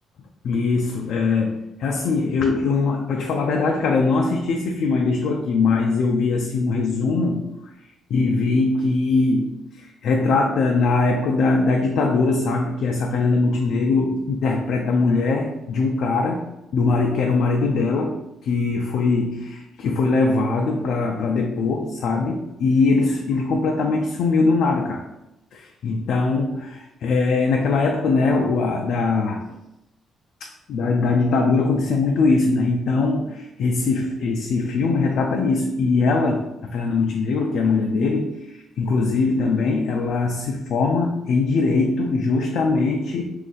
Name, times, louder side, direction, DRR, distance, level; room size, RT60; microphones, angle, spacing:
voice 1, 0.4-7.7 8.1-16.5 16.7-25.1 25.5-29.4 30.4-43.2, left 3 dB, 75° left, 1 dB, 0.3 m, -21 dB
2.5 x 2.5 x 3.7 m, 0.88 s
cardioid pair, 90°, 0 cm